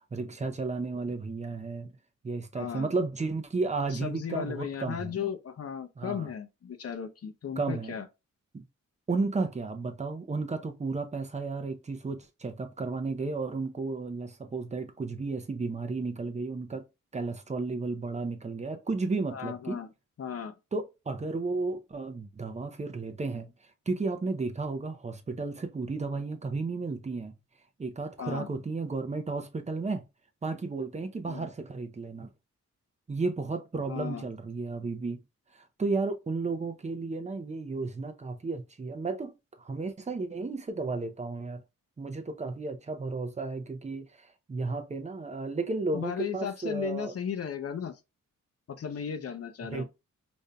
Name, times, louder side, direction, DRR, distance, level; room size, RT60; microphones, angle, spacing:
voice 1, 0.1-1.9 2.2-5.1 6.0-6.3 7.6-8.0 8.5-8.6 9.1-16.9 17.1-19.8 20.7-23.5 23.9-27.4 27.8-30.0 30.4-32.3 33.1-35.2 35.5-39.3 39.6-41.6 42.0-47.1 49.6-49.8, right 3 dB, 20° right, 0.5 m, -33 dB
voice 2, 2.5-2.9 3.9-8.1 19.3-19.9 20.2-20.5 28.2-28.5 31.3-31.5 33.8-34.3 45.9-47.9 48.7-49.8, left 8 dB, 50° left, 0.6 m, -35 dB
5.1 x 2.6 x 2.2 m
cardioid pair, 105°, 32 cm